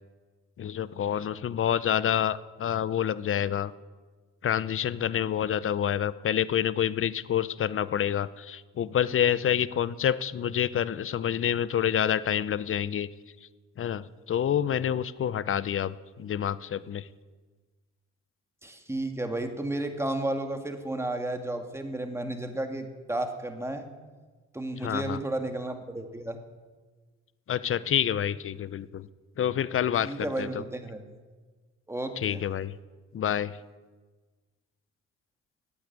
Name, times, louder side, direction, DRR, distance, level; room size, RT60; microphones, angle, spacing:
voice 1, 0.6-3.7 4.4-13.1 13.8-17.1 24.8-25.2 27.5-29.1 29.4-30.6 32.2-32.7 33.1-33.6, left 9 dB, 45° left, 17 dB, 0.7 m, -28 dB
voice 2, 18.6-23.9 24.5-26.4 30.0-31.0 31.9-32.4, right 1 dB, 10° right, 5 dB, 1.9 m, -32 dB
14.5 x 8.6 x 9.3 m, 1.4 s
cardioid pair, 90°, 30 cm